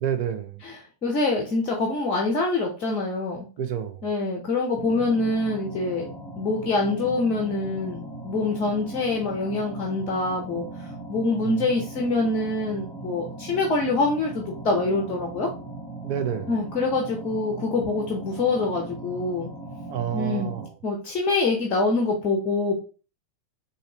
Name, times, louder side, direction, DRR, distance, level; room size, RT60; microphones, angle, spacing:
voice 1, 0.0-0.6 3.6-4.0 11.4-11.7 16.0-16.5 19.9-20.7, right 9 dB, 50° right, 0.6 m, -29 dB
voice 2, 0.6-3.5 4.0-6.1 6.4-15.5 16.5-19.5 20.1-20.5 20.8-22.8, left 3 dB, 35° left, 0.8 m, -25 dB
sound 1, 4.7-20.7, right 2 dB, ahead, 1.0 m, -39 dB
4.0 x 2.7 x 2.9 m
figure-of-eight pair, 90°, 0 cm